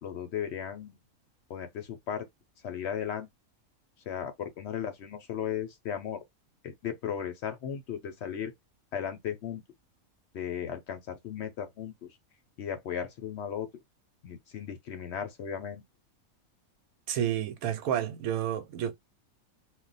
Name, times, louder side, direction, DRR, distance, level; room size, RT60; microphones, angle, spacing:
voice 1, 0.0-1.0 1.5-2.3 2.6-3.3 4.1-6.2 6.6-8.5 8.9-9.6 10.3-12.1 12.6-13.7 14.2-15.8, left 8 dB, 65° left, 0.7 m, -36 dB
voice 2, 17.1-18.9, right 10 dB, 80° right, 1.0 m, -30 dB
2.3 x 2.1 x 3.9 m
omnidirectional pair, 1.5 m